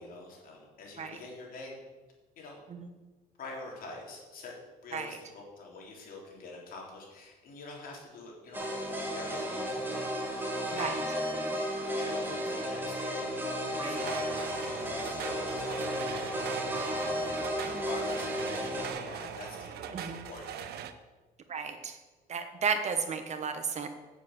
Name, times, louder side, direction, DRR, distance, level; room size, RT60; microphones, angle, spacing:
voice 1, 0.0-1.8 2.4-2.6 3.4-4.5 4.8-11.1 11.9-16.6 16.9-20.7, left 2 dB, 60° left, -2 dB, 3.7 m, -45 dB
sound 1, 8.5-18.9, equal, 10° right, 2.4 m, -33 dB
sound 2, 13.9-20.9, right 9 dB, 70° right, 0.8 m, -41 dB
voice 2, 19.9-20.3 21.5-22.0 22.3-23.9, right 5 dB, 40° right, 7 dB, 1.2 m, -33 dB
8.3 x 7.2 x 8.0 m, 1.3 s
cardioid pair, 110°, 17 cm